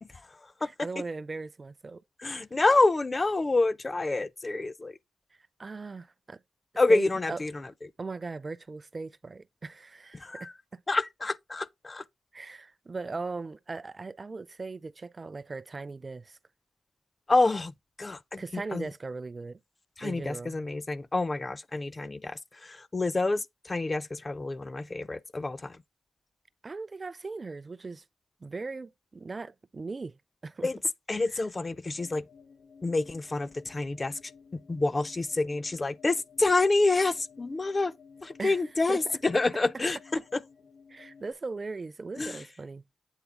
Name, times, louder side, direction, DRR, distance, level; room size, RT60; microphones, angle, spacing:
voice 1, 0.0-1.0 2.2-5.0 6.8-7.9 10.1-10.5 10.9-12.1 17.3-18.9 20.0-25.8 30.6-30.8 31.1-32.3 32.8-37.9 38.2-40.4 42.2-42.5, left 3 dB, 30° left, 0.5 m, -28 dB
voice 2, 0.8-2.0 5.6-6.4 6.9-7.4 8.0-10.8 12.3-16.4 18.4-19.6 20.0-20.6 26.6-28.0 28.4-30.2 30.4-30.7 38.4-38.6 38.9-39.2 40.9-42.8, right 3 dB, 40° right, 0.4 m, -38 dB
sound 1, 31.9-41.3, left 5 dB, 70° left, 1.1 m, -55 dB
8.1 x 3.9 x 3.6 m
cardioid pair, 70°, 0 cm